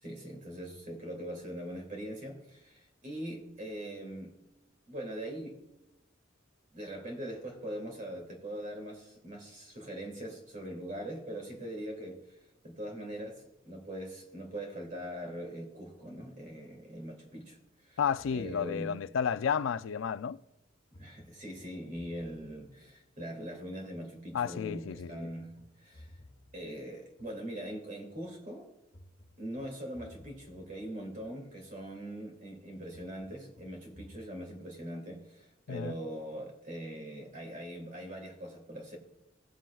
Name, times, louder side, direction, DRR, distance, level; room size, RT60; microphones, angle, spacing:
voice 1, 0.0-4.3 4.9-5.6 6.7-12.4 12.6-17.6 17.8-18.0 18.3-18.9 20.9-26.1 26.5-28.7 29.4-39.0, right 1 dB, 40° right, 2.4 m, -42 dB
voice 2, 18.0-20.4 24.3-25.3 35.7-36.0, left 7 dB, 75° left, 0.4 m, -32 dB
sound 1, 20.9-24.0 24.9-28.0 28.9-32.0 32.9-34.3, left 1 dB, 45° left, 1.2 m, -58 dB
17.5 x 7.4 x 2.3 m
head